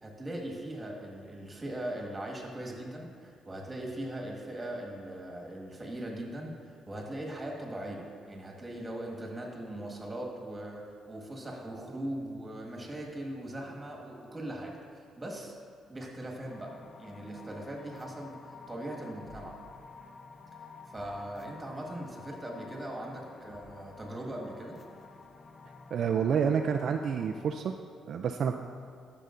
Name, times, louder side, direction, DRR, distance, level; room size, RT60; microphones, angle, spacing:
voice 1, 0.0-14.8 15.2-15.5 15.9-16.7 17.0-19.6 20.9-24.8, right 1 dB, 20° right, -1 dB, 1.7 m, -40 dB
sound 1, 16.5-27.5, left 4 dB, 40° left, 0.5 m, -50 dB
voice 2, 25.9-27.7 28.1-28.5, right 7 dB, 60° right, 4 dB, 0.3 m, -28 dB
12.0 x 6.7 x 2.5 m, 2.4 s
cardioid pair, 90°, 0 cm